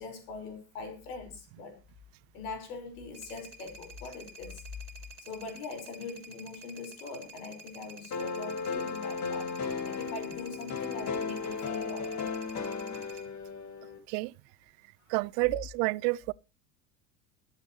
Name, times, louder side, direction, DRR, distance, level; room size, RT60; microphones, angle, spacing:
voice 1, 0.0-1.8 2.3-4.6 5.3-9.5 9.9-12.3, left 4 dB, 65° left, 5.5 m, -42 dB
sound 1, 3.1-13.3, right 2 dB, 30° right, 3.3 m, -50 dB
sound 2, 8.1-14.0, left 5 dB, 35° left, 2.9 m, -35 dB
voice 2, 15.1-16.3, right 25 dB, 50° right, 0.6 m, -29 dB
21.5 x 8.2 x 3.2 m
hypercardioid pair, 75°, 48 cm